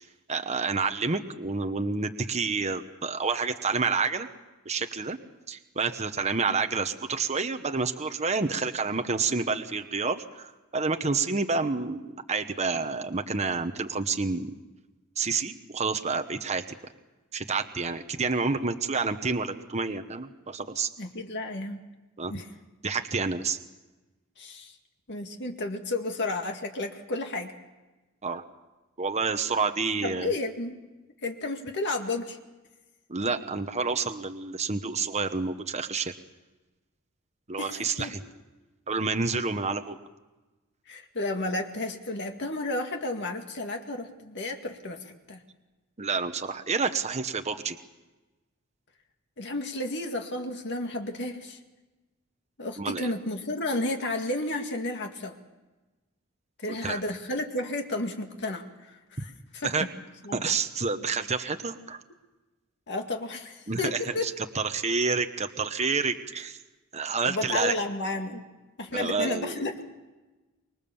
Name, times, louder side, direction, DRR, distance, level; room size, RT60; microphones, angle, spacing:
voice 1, 0.3-4.3 4.6-5.2 5.5-14.5 15.2-16.6 17.3-20.9 22.2-22.4 22.8-23.6 28.2-28.4 29.0-30.3 33.1-36.1 37.5-38.2 38.9-40.0 46.0-47.8 52.8-53.1 56.8-57.0 59.2-59.3 59.6-59.9 60.3-62.0 63.7-66.6 66.9-67.8 68.9-69.6, right 4 dB, 30° right, 7 dB, 1.1 m, -29 dB
voice 2, 21.0-21.8 22.3-22.5 24.4-24.8 25.1-27.5 30.0-30.8 31.2-32.4 37.6-38.1 40.9-45.4 49.4-51.6 52.6-55.4 56.6-59.8 60.2-60.4 62.9-64.3 67.2-68.4 68.8-69.8, left 2 dB, 55° left, 4 dB, 2.1 m, -32 dB
25.0 x 23.0 x 7.2 m, 1.1 s
head